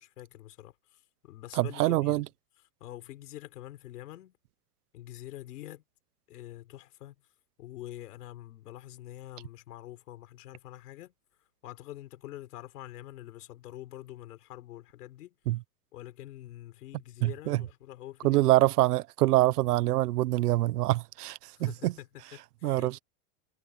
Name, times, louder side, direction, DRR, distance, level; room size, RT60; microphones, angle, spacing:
voice 1, 0.0-2.2 2.8-4.4 4.9-5.8 6.3-7.1 7.6-11.1 11.4-15.4 15.9-18.6 21.6-23.0, left 14 dB, 80° left, 5.0 m, -46 dB
voice 2, 1.6-2.2 15.5-15.6 17.2-17.6 18.2-21.4 21.8-21.9 22.6-23.0, right 16 dB, 75° right, 1.1 m, -25 dB
supercardioid pair, 175°, 46 cm